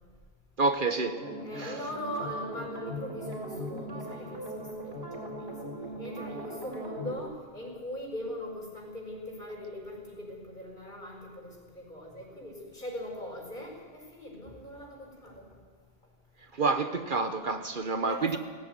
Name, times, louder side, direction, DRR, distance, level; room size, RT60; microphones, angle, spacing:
voice 1, 0.6-1.2 1.6-1.8 16.5-18.4, right 3 dB, 55° right, 1.1 m, -28 dB
sound 1, 1.1-7.2, equal, 70° right, 4.4 m, -39 dB
voice 2, 1.4-15.6 18.0-18.4, left 1 dB, 50° left, 5.5 m, -40 dB
18.0 x 16.0 x 9.4 m
omnidirectional pair, 1.1 m